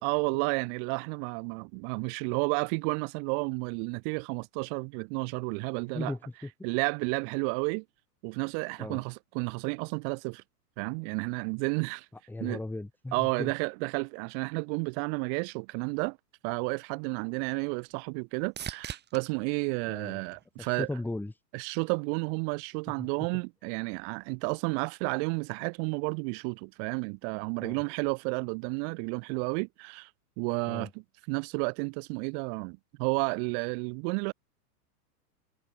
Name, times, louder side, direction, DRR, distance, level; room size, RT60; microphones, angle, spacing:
voice 1, 0.0-6.1 6.6-7.8 8.2-10.4 10.8-12.1 12.4-12.6 13.1-16.2 16.4-20.9 21.5-30.1 30.4-30.9 31.3-34.3, right 40 dB or more, 45° right, 2.1 m, -31 dB
voice 2, 5.9-6.5 8.8-9.0 12.3-13.5 19.9-20.2 20.8-21.3 23.0-23.1 27.6-27.8 30.7-30.9, left 2 dB, 5° left, 2.7 m, -36 dB
sound 1, 16.8-21.0 21.6-22.2 30.0-30.1, right 9 dB, 20° right, 3.2 m, -46 dB
hypercardioid pair, 130°, 48 cm